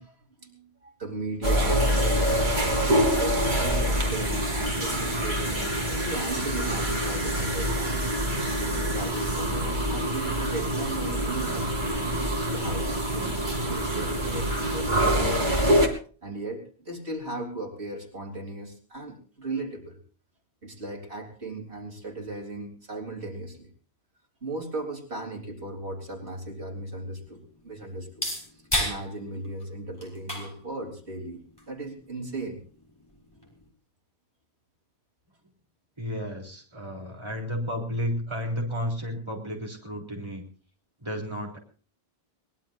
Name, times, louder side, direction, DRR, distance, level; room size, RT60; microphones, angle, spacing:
voice 1, 0.0-2.6 3.2-8.1 8.5-11.9 12.5-15.7 16.2-20.0 20.6-23.7 24.4-28.3 28.8-32.6, right 2 dB, 85° right, 1 dB, 4.1 m, -36 dB
sound 1, 1.4-15.9, equal, 50° right, 3.2 m, -26 dB
sound 2, 25.8-33.7, equal, 20° left, 6.4 m, -37 dB
voice 2, 36.0-40.5 41.0-41.6, equal, 25° right, 0 dB, 3.9 m, -32 dB
23.0 x 20.0 x 2.7 m, 0.42 s
omnidirectional pair, 1.1 m